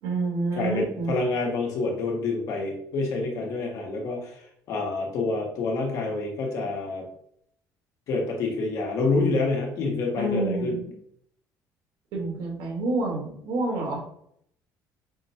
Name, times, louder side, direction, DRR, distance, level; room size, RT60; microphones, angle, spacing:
voice 1, 0.0-1.1 10.2-10.9 12.1-14.0, right 2 dB, 75° right, 0 dB, 1.7 m, -28 dB
voice 2, 0.6-7.1 8.1-10.8, left 3 dB, 50° left, 1 dB, 1.1 m, -27 dB
5.6 x 2.3 x 4.2 m, 0.70 s
cardioid pair, 170°, 7 cm